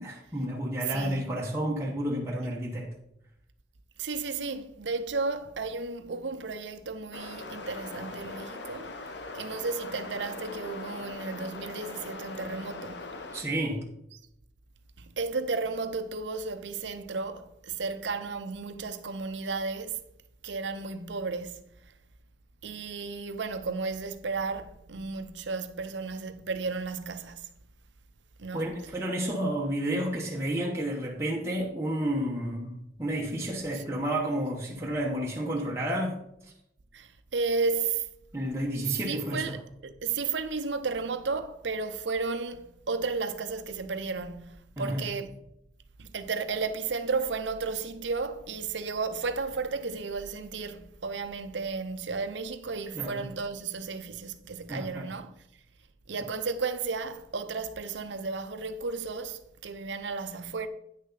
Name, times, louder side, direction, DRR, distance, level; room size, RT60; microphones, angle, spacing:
voice 1, 0.0-2.9 13.3-13.8 28.5-36.2 38.3-39.6 44.8-45.1 52.9-53.3 54.7-55.1, right 1 dB, 15° right, 1.1 m, -31 dB
voice 2, 0.9-1.3 4.0-9.0 9.3-13.0 15.0-20.0 20.4-21.6 22.6-27.5 28.4-28.7 33.7-33.8 36.9-38.1 39.1-45.3 46.0-55.4 56.1-60.7, right 4 dB, 85° right, 0.7 m, -33 dB
sound 1, 7.1-13.4, left 3 dB, 75° left, 0.9 m, -41 dB
9.3 x 6.4 x 4.0 m
head